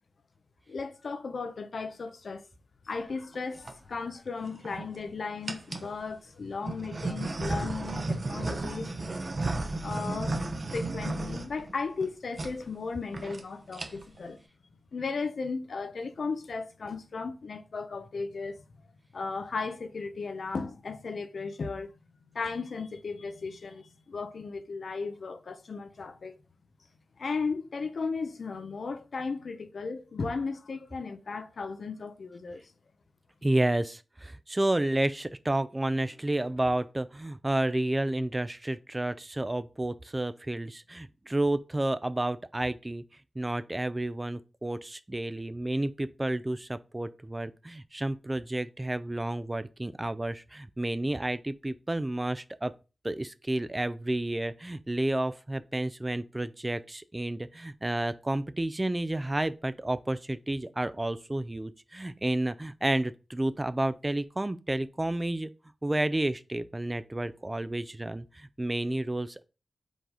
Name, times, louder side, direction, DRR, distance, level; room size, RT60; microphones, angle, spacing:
voice 1, 0.7-2.4 2.9-8.9 9.8-10.4 10.7-14.4 14.9-18.6 19.1-21.9 22.3-26.4 27.2-32.6, left 4 dB, 70° left, 0.7 m, -35 dB
sound 1, 3.3-3.7 4.5-5.0 5.5-5.9 6.6-12.1 12.3-12.5 12.8-12.9 13.1-13.4 13.7-14.2, right 2 dB, 45° right, 1.0 m, -34 dB
voice 2, 33.4-43.0 43.4-52.7 53.0-65.5 65.8-69.4, right 1 dB, 20° right, 0.5 m, -31 dB
5.1 x 3.9 x 5.0 m
wide cardioid pair, 85°, 0 cm